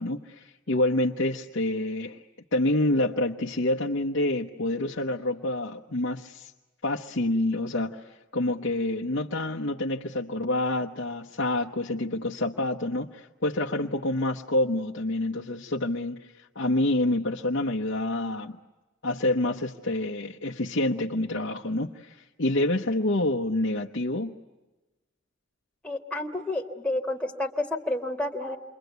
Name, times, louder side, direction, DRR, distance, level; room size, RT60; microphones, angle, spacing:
voice 1, 0.0-2.2 2.5-6.5 6.8-18.6 19.0-24.3, left 1 dB, 70° left, -1 dB, 1.0 m, -27 dB
voice 2, 25.8-28.6, left 1 dB, 5° left, -1 dB, 1.7 m, -30 dB
28.0 x 23.5 x 8.1 m, 1.1 s
head